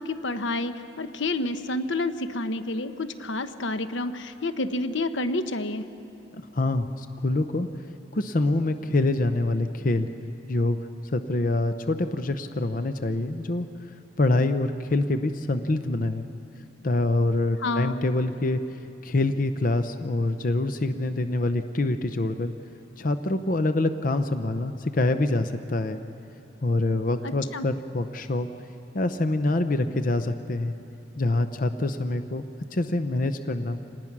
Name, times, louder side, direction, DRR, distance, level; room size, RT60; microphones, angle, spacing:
voice 1, 0.0-5.8 17.6-18.0 27.2-27.7, left 2 dB, 80° left, 10 dB, 1.0 m, -29 dB
voice 2, 6.5-7.7 8.1-10.1 10.5-13.7 14.2-16.2 16.8-18.6 19.0-22.5 23.0-26.0 26.6-28.5 28.9-30.7 31.2-33.8, left 2 dB, 45° left, 9 dB, 0.7 m, -25 dB
27.0 x 19.5 x 6.0 m, 2.8 s
head